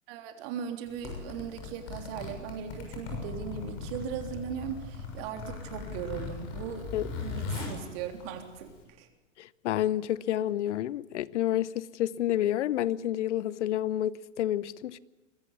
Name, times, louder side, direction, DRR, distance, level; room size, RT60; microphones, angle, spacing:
voice 1, 0.1-6.9 7.2-8.7 9.0-9.1, right 7 dB, 50° right, 3.4 m, -38 dB
Zipper (clothing), 0.9-8.8, left 4 dB, 45° left, 6.8 m, -39 dB
voice 2, 9.4-15.0, left 12 dB, 65° left, 0.8 m, -29 dB
22.5 x 14.5 x 9.6 m
hypercardioid pair, 115°, 38 cm